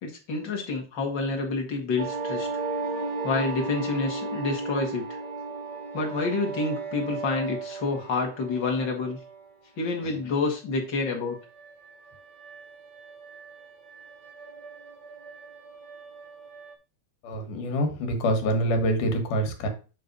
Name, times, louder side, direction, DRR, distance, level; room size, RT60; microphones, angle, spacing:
voice 1, 0.0-2.5 3.2-5.2 5.9-9.2 9.8-11.4, left 3 dB, 40° left, 1 dB, 2.1 m, -28 dB
sound 1, 2.0-9.5 11.4-16.7, right 4 dB, 75° right, 0.9 m, -36 dB
voice 2, 17.2-19.7, equal, 85° left, 5 dB, 3.1 m, -25 dB
8.8 x 3.2 x 5.3 m, 0.34 s
omnidirectional pair, 3.6 m